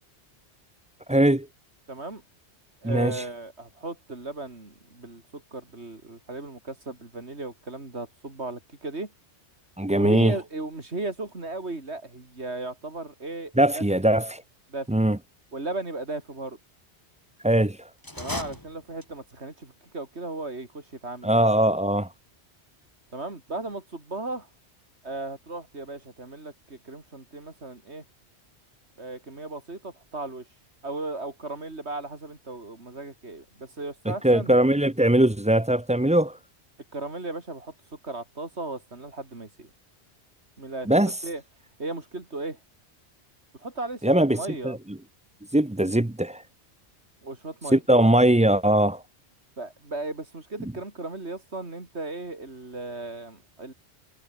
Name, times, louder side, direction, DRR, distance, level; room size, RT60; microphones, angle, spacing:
voice 1, 1.1-1.5 2.8-3.2 9.8-10.4 13.6-14.4 14.9-15.2 17.4-17.8 21.2-22.1 34.1-36.4 40.9-41.1 44.0-45.0 45.5-46.4 47.7-49.0, right 1 dB, 10° right, 0.6 m, -21 dB
voice 2, 1.9-2.2 2.8-9.1 9.9-13.8 14.7-14.9 15.5-16.6 18.2-21.4 23.1-24.5 25.0-28.0 29.0-30.5 30.8-34.5 36.9-37.7 38.0-39.7 40.6-41.4 41.8-42.6 43.6-44.8 47.2-47.8 49.6-53.7, right 2 dB, 75° right, 4.2 m, -36 dB
sound 1, 18.0-19.4, left 1 dB, 20° left, 3.8 m, -36 dB
omnidirectional pair, 1.1 m